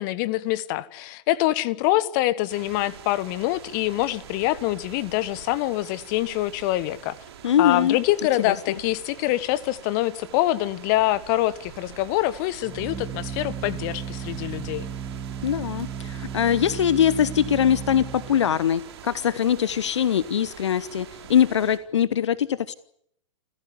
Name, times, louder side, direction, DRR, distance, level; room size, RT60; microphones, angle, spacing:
voice 1, 0.0-7.1 7.6-14.9, left 16 dB, 40° left, 1.3 m, -25 dB
sound 1, 2.5-21.8, right 9 dB, 50° right, 4.3 m, -45 dB
voice 2, 7.4-8.0 8.4-8.6 15.4-22.7, left 9 dB, 60° left, 1.0 m, -22 dB
Organ, 10.9-21.4, right 7 dB, 10° right, 2.8 m, -36 dB
29.5 x 15.5 x 9.8 m
figure-of-eight pair, 105°, 17 cm